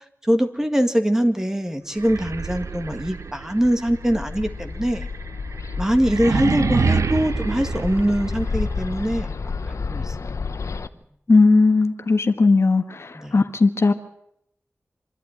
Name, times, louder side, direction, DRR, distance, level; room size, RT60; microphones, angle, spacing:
voice 1, 0.2-5.1 5.8-10.2 13.1-13.4, equal, 10° right, 7 dB, 1.9 m, -23 dB
sound 1, 1.9-8.8, right 4 dB, 85° right, 0.9 m, -27 dB
Bird, 3.6-10.9, left 4 dB, 80° left, 0.9 m, -30 dB
voice 2, 11.3-13.9, left 3 dB, 60° left, 7 dB, 1.5 m, -17 dB
26.0 x 12.0 x 9.6 m, 0.78 s
wide cardioid pair, 80°, 5 cm